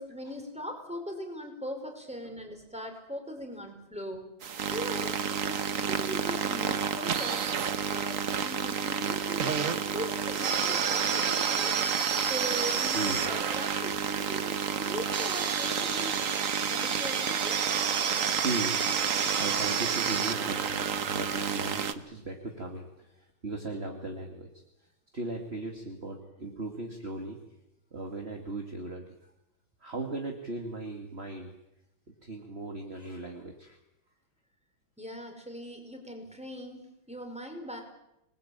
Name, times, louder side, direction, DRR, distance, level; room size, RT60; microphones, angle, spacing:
voice 1, 0.0-4.3 4.7-7.4 7.9-11.8 12.3-16.3 16.7-17.6 35.0-37.8, equal, 5° right, 4 dB, 5.0 m, -40 dB
sound 1, 4.4-21.9, right 7 dB, 45° right, 1.3 m, -29 dB
voice 2, 12.9-13.2 18.3-24.5 25.1-27.4 27.9-29.1 29.8-31.5 32.2-33.8, right 2 dB, 30° right, 2 dB, 2.6 m, -37 dB
26.0 x 20.0 x 8.9 m, 0.86 s
omnidirectional pair, 2.2 m